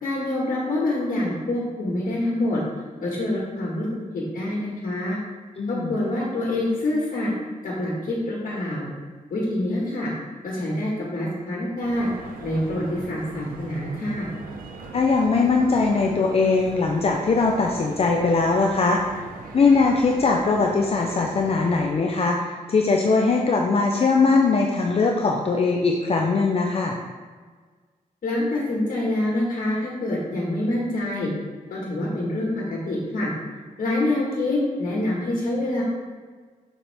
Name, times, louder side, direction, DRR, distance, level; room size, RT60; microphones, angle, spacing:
voice 1, 0.0-2.6 3.0-3.9 4.1-5.2 5.7-7.3 7.6-8.9 9.3-10.1 10.4-12.1 12.4-14.3 28.2-31.3 31.7-33.3 33.8-35.8, left 1 dB, 70° left, -4 dB, 1.6 m, -26 dB
voice 2, 5.6-6.0 14.9-19.0 19.5-27.0, left 4 dB, 45° left, 1 dB, 0.6 m, -21 dB
sound 1, 11.8-21.9, right 4 dB, 85° right, 0.8 m, -40 dB
6.9 x 5.8 x 3.5 m, 1.5 s
wide cardioid pair, 140°, 14 cm